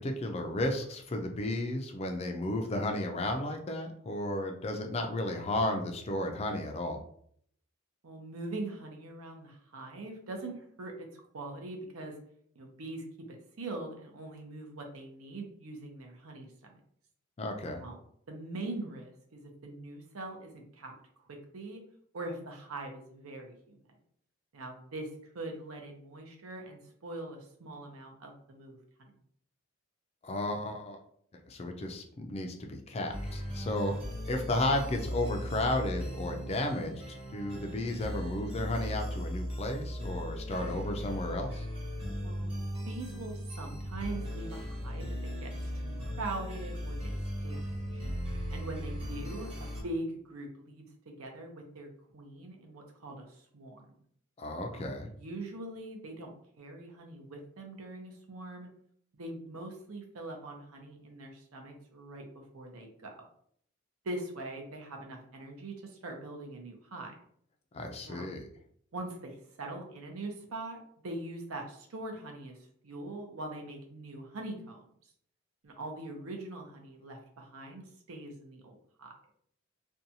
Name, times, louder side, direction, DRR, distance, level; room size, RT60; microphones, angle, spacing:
voice 1, 0.0-7.0 17.4-17.8 30.2-31.0 31.5-34.0 34.3-36.9 37.3-41.7 54.4-55.1 67.7-68.4, left 1 dB, 30° left, 4 dB, 0.3 m, -33 dB
voice 2, 8.0-12.2 12.6-16.8 17.8-18.0 18.3-20.9 21.3-21.8 22.1-23.8 24.5-29.2 42.2-42.5 42.9-45.7 46.0-47.1 47.4-48.0 48.5-53.8 54.7-54.8 55.2-58.7 59.1-63.1 64.0-67.1 68.1-68.3 68.9-74.8 75.6-79.1, right 2 dB, 85° right, 2 dB, 0.6 m, -42 dB
sound 1, 33.1-49.8, equal, 25° right, 0.8 m, -37 dB
2.6 x 2.2 x 2.7 m, 0.65 s
head